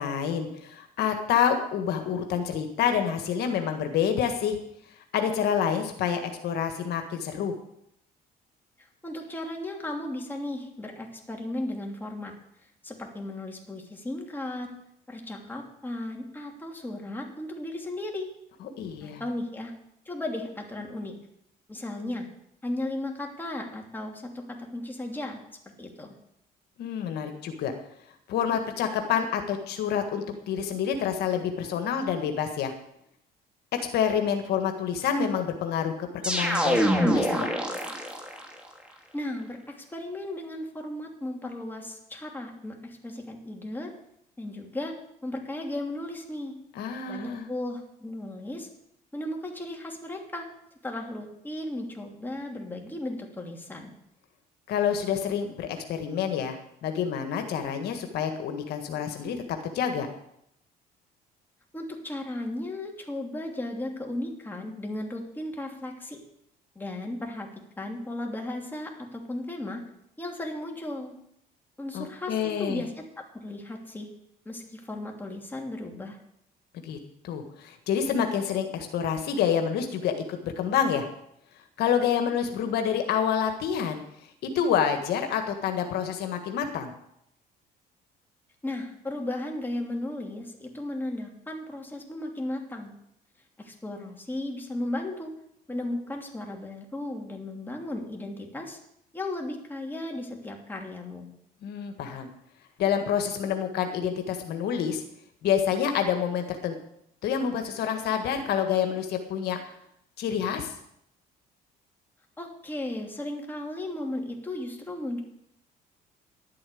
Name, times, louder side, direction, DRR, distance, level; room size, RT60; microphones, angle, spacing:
voice 1, 0.0-4.6 5.1-7.5 18.6-19.2 26.8-27.7 28.3-32.7 33.7-37.5 46.8-47.5 54.7-60.1 71.9-72.8 76.8-77.0 77.2-81.1 81.8-84.0 84.4-86.9 101.6-102.3 102.8-105.0 105.4-106.8 107.2-109.6 110.2-110.7, left 8 dB, 75° left, 5 dB, 1.7 m, -28 dB
voice 2, 9.0-12.3 12.6-14.7 15.1-18.3 19.0-19.7 20.0-21.2 21.7-22.2 22.6-25.4 25.8-26.2 39.1-43.9 44.4-44.9 45.2-46.5 47.1-48.7 49.1-50.5 50.8-53.9 61.7-66.2 66.7-67.5 67.8-69.8 70.2-71.1 71.8-73.0 73.3-74.1 74.4-76.2 88.6-92.9 93.6-95.3 95.7-98.8 99.1-101.3 112.4-115.2, left 1 dB, 10° left, 1 dB, 3.0 m, -35 dB
sound 1, 36.2-38.5, equal, 5° right, 2.3 m, -25 dB
11.5 x 8.7 x 8.5 m, 0.75 s
cardioid pair, 110°, 17 cm